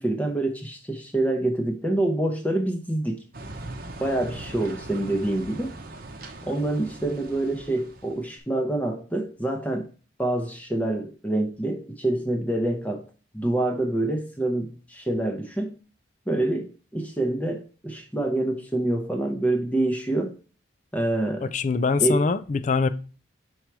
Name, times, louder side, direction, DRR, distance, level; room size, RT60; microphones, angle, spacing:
voice 1, 0.0-3.2 4.0-5.7 6.4-9.9 10.2-13.0 13.3-15.7 16.3-20.4 20.9-21.5 22.0-22.2, right 1 dB, 10° left, 0.7 m, -26 dB
sound 1, 3.3-8.3, right 2 dB, 50° right, 0.8 m, -40 dB
voice 2, 21.4-22.9, left 4 dB, 40° left, 0.4 m, -23 dB
5.5 x 4.6 x 4.6 m
head